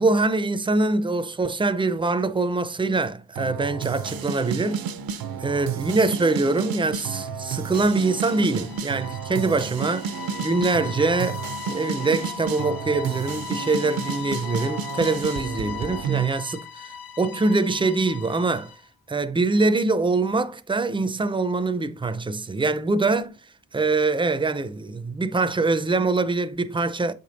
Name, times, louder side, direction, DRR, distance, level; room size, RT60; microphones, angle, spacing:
voice 1, 0.0-4.8 5.4-10.1 10.4-18.7 19.1-23.4 23.7-27.1, right 3 dB, 15° right, 0.5 m, -24 dB
sound 1, 3.4-16.3, right 7 dB, 75° right, 0.7 m, -31 dB
sound 2, 8.1-18.8, left 8 dB, 65° left, 0.9 m, -38 dB
8.1 x 5.1 x 3.9 m
wide cardioid pair, 165°, 36 cm